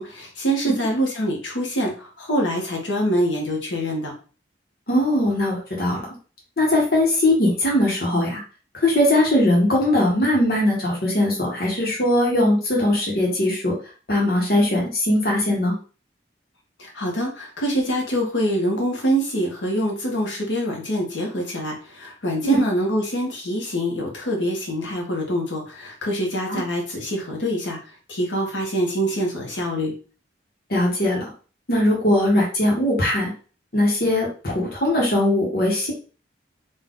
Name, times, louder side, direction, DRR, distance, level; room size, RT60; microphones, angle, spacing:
voice 1, 0.0-4.1 16.8-29.9, equal, 80° left, 0 dB, 1.4 m, -25 dB
voice 2, 4.9-6.0 6.6-8.4 8.7-13.7 14.1-15.7 22.4-22.6 26.5-26.6 30.7-31.3 31.7-33.3 33.7-35.9, left 1 dB, 50° left, -3 dB, 1.3 m, -20 dB
4.1 x 2.7 x 3.8 m, 0.37 s
head